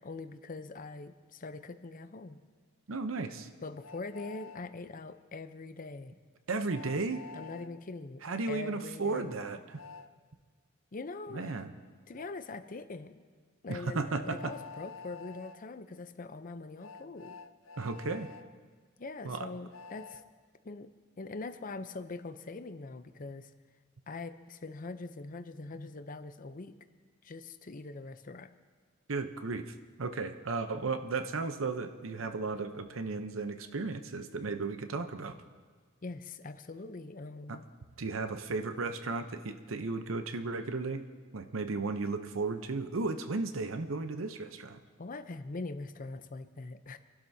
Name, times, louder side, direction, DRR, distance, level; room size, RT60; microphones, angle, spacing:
voice 1, 0.0-2.4 3.6-6.2 7.3-9.4 10.9-11.6 12.1-13.1 13.6-17.4 19.0-20.2 20.6-20.9 21.2-23.5 24.1-26.8 27.2-28.5 36.0-37.7 45.0-47.0, left 3 dB, 45° left, 10 dB, 0.6 m, -43 dB
voice 2, 2.9-3.5 6.5-7.2 8.2-9.8 11.3-11.7 13.7-14.5 17.8-18.3 19.2-19.5 29.1-35.4 37.5-37.6 38.0-41.0 41.3-44.8, right 3 dB, 80° right, 9 dB, 0.8 m, -35 dB
Train, 3.8-4.6 6.7-7.7 9.8-10.1 12.1-12.3 14.3-15.6 16.8-18.4 19.7-20.2, left 5 dB, 85° left, 0.5 m, -48 dB
27.0 x 12.0 x 2.8 m, 1.5 s
head